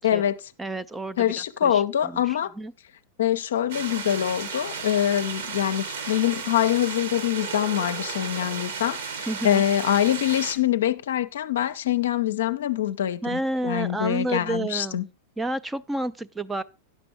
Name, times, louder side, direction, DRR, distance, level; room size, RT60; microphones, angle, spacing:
voice 1, 0.0-0.4 1.2-2.5 3.2-15.0, left 11 dB, 60° left, 0.5 m, -24 dB
voice 2, 0.6-1.3 1.6-2.7 9.3-9.6 13.2-15.0 15.4-16.6, right 1 dB, 10° right, 0.4 m, -30 dB
sound 1, 3.7-10.6, right 5 dB, 65° right, 1.7 m, -34 dB
10.0 x 6.8 x 4.9 m
figure-of-eight pair, 90°, 0 cm